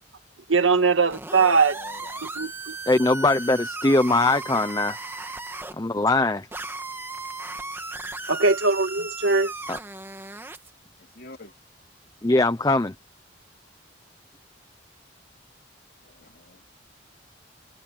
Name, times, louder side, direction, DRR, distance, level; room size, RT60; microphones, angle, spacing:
voice 1, 0.5-1.8 2.2-2.8 8.3-9.5, right 4 dB, 85° right, 1.9 m, -21 dB
sound 1, 1.1-5.7 6.5-10.7, right 2 dB, 10° right, 1.7 m, -36 dB
voice 2, 1.7-2.3 4.1-4.9 11.0-11.6 16.0-16.6, left 2 dB, 50° left, 3.0 m, -47 dB
voice 3, 2.9-5.0 5.8-6.5 9.7-9.8 12.2-12.9, left 2 dB, 20° left, 0.7 m, -21 dB
head